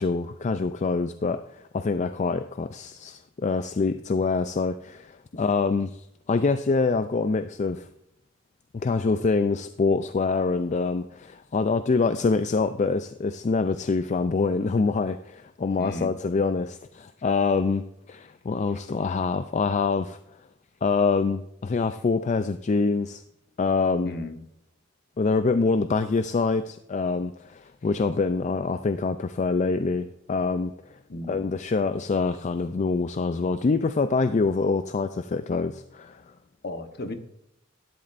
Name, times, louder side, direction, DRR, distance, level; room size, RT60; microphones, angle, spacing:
voice 1, 0.0-7.9 8.7-17.8 18.1-20.2 20.8-23.2 23.6-24.1 25.2-31.0 31.3-36.2, left 4 dB, 35° left, 10 dB, 0.4 m, -25 dB
voice 2, 15.8-16.1 24.0-24.4 31.1-31.4 36.6-37.1, left 2 dB, 55° left, 7 dB, 1.0 m, -34 dB
12.0 x 10.5 x 2.5 m, 0.81 s
head